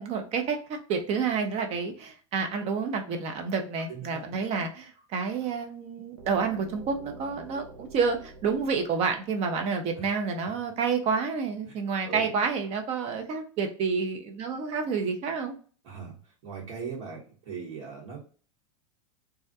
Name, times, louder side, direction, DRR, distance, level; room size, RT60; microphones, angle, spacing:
voice 1, 0.0-15.5, right 5 dB, 40° right, 5 dB, 0.6 m, -29 dB
voice 2, 3.9-4.4 10.0-10.1 12.1-12.3 15.8-16.2 16.4-18.2, right 5 dB, 60° right, -8 dB, 1.3 m, -39 dB
sound 1, 6.2-10.1, right 3 dB, 80° right, 0.7 m, -48 dB
2.4 x 2.1 x 2.7 m, 0.40 s
hypercardioid pair, 105°, 17 cm